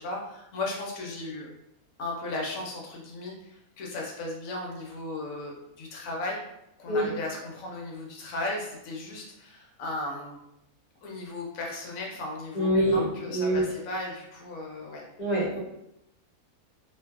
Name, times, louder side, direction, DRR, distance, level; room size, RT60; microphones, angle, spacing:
voice 1, 0.0-1.5 2.0-6.4 6.8-10.4 11.0-15.0, left 2 dB, 70° left, -1 dB, 1.0 m, -36 dB
voice 2, 12.5-13.6 15.2-15.6, equal, 35° left, -7 dB, 0.9 m, -25 dB
2.6 x 2.4 x 2.3 m, 0.85 s
omnidirectional pair, 1.6 m